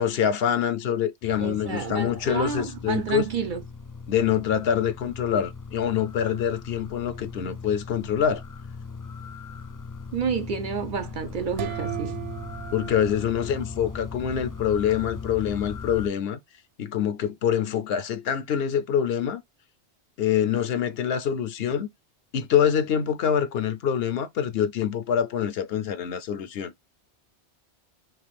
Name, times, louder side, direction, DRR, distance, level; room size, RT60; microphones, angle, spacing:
voice 1, 0.0-3.2 4.1-8.4 12.7-16.4 16.8-19.4 20.2-21.9 22.3-26.7, left 8 dB, 65° left, 0.8 m, -25 dB
sound 1, 1.2-16.1, left 4 dB, 25° left, 0.4 m, -39 dB
voice 2, 1.4-3.6 10.1-12.2, right 6 dB, 55° right, 0.6 m, -30 dB
sound 2, 11.6-14.3, right 11 dB, 85° right, 0.9 m, -36 dB
5.8 x 2.3 x 3.4 m
omnidirectional pair, 1.2 m